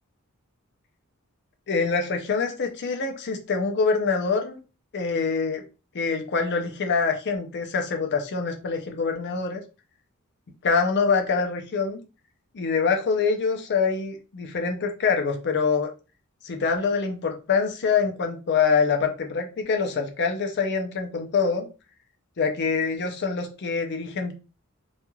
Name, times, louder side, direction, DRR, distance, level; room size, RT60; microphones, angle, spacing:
voice 1, 1.7-4.6 4.9-5.6 5.9-9.6 10.6-12.0 12.5-15.9 16.4-21.7 22.4-24.3, left 5 dB, 50° left, 4 dB, 0.5 m, -25 dB
3.0 x 2.4 x 2.2 m, 0.32 s
head